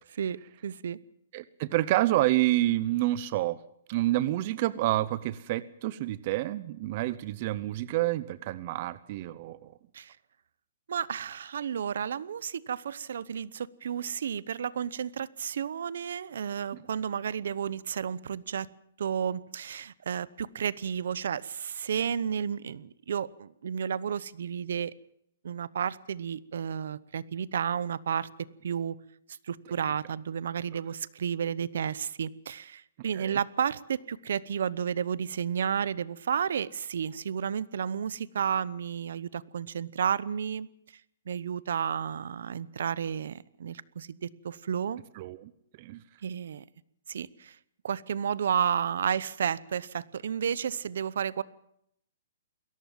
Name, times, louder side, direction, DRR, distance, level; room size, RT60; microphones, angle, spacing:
voice 1, 0.2-1.0 9.9-10.2 10.9-18.7 19.0-24.9 25.4-29.0 29.5-40.7 41.3-45.0 46.2-46.6 47.1-47.6 47.8-51.4, right 8 dB, 65° right, 20 dB, 0.9 m, -32 dB
voice 2, 1.3-3.6 3.9-9.7 33.1-33.4 45.1-45.5 45.8-46.0, right 16 dB, 30° right, 16 dB, 0.7 m, -28 dB
22.0 x 17.5 x 7.3 m, 0.73 s
hypercardioid pair, 170°, 0 cm